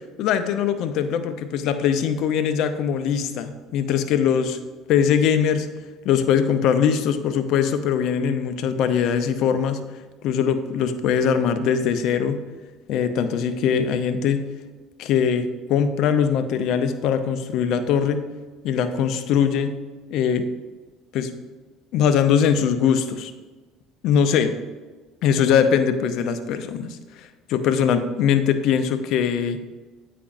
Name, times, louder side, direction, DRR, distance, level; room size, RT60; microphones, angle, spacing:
voice 1, 0.2-4.6 4.9-5.7 6.0-9.8 10.2-12.4 12.9-14.5 15.0-18.2 18.6-19.8 20.1-20.5 21.1-21.3 21.9-23.3 24.0-24.6 25.2-29.6, left 7 dB, 65° left, 9 dB, 0.5 m, -21 dB
8.5 x 5.0 x 2.5 m, 1.3 s
hypercardioid pair, 70°, 0 cm